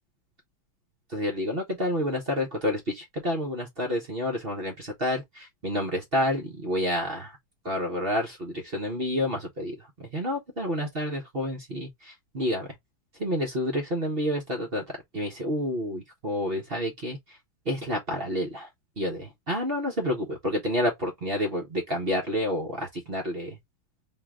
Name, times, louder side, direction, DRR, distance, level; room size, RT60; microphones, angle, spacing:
voice 1, 1.1-7.4 7.6-12.7 13.2-14.8 15.1-17.4 17.7-18.7 19.0-23.6, left 1 dB, 40° right, 0.8 m, -29 dB
3.8 x 2.7 x 3.6 m
omnidirectional pair, 2.3 m